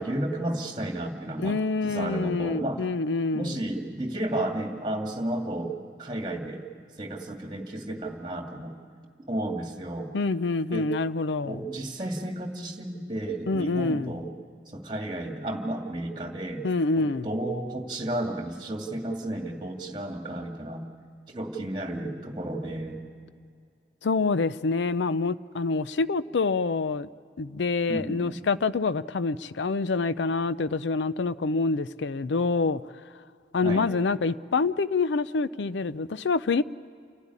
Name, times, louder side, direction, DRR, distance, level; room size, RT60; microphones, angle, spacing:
voice 1, 0.0-2.8 3.3-5.7 6.0-6.7 7.0-8.8 9.3-10.1 10.7-10.9 11.4-14.3 14.7-16.7 17.0-20.9 21.3-23.0 27.9-28.4 33.6-33.9, right 1 dB, 25° right, 2 dB, 2.2 m, -32 dB
voice 2, 1.4-3.6 10.1-11.6 13.5-14.2 16.6-17.3 24.0-27.1 27.4-32.8 33.5-36.6, left 3 dB, 80° left, 15 dB, 0.5 m, -26 dB
29.5 x 12.0 x 9.8 m, 2.3 s
head